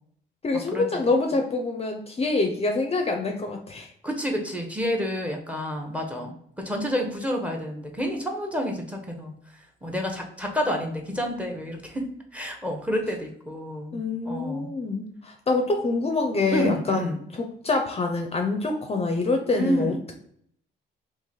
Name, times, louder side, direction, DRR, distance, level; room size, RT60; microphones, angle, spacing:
voice 1, 0.4-3.9 13.9-19.9, left 3 dB, 30° left, 3 dB, 0.5 m, -26 dB
voice 2, 4.0-9.3 9.8-12.1 12.3-14.7 16.5-17.2 19.5-20.0, equal, 5° right, 3 dB, 0.8 m, -29 dB
3.0 x 2.5 x 3.8 m, 0.67 s
cardioid pair, 90°, 20 cm